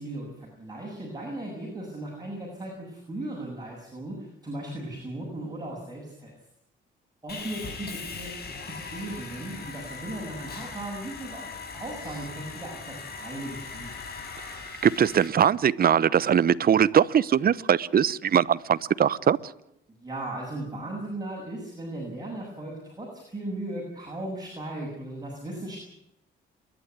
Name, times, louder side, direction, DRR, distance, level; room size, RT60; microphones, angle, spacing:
voice 1, 0.0-6.3 7.2-11.5 11.7-13.9 20.0-25.8, right 1 dB, 20° right, -3 dB, 7.9 m, -37 dB
Sawing, 7.3-15.3, left 4 dB, 55° left, 5.8 m, -40 dB
voice 2, 14.8-19.4, right 8 dB, 50° right, 18 dB, 0.9 m, -21 dB
29.0 x 12.0 x 9.6 m, 0.76 s
cardioid pair, 90°, 20 cm